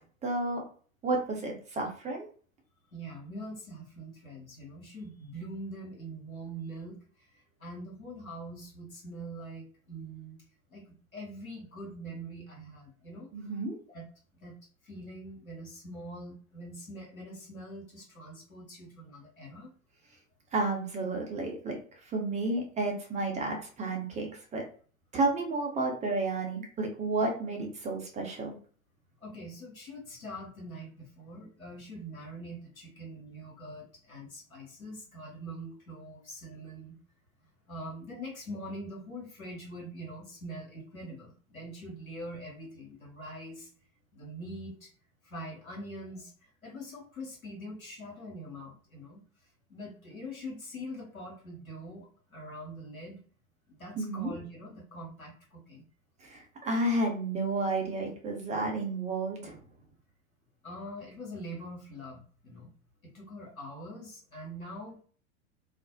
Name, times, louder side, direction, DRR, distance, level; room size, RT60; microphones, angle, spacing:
voice 1, 0.2-0.6 1.0-2.3 13.3-13.7 20.5-21.8 22.1-24.6 25.1-28.5 54.0-54.3 56.2-59.6, right 2 dB, 15° right, 1 dB, 0.6 m, -31 dB
voice 2, 2.9-7.0 7.3-10.4 10.7-13.3 13.9-14.1 14.3-14.6 14.8-19.7 29.2-37.0 37.7-43.7 44.1-44.9 45.2-49.2 49.7-53.2 53.7-55.8 60.6-62.7 63.0-65.0, equal, 90° left, -3 dB, 1.0 m, -43 dB
2.4 x 2.0 x 2.6 m, 0.42 s
figure-of-eight pair, 85°, 41 cm